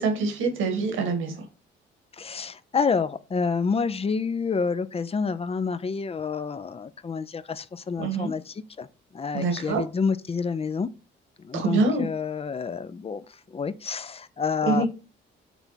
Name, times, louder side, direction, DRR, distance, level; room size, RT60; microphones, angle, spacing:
voice 1, 0.0-1.4 8.0-8.3 9.3-9.8 11.5-12.1 14.6-14.9, right 3 dB, 85° right, 1.9 m, -25 dB
voice 2, 2.2-8.9 9.1-10.9 11.4-13.2 13.5-14.9, left 5 dB, 30° left, 0.6 m, -28 dB
6.0 x 3.4 x 5.8 m
cardioid pair, 90°, 20 cm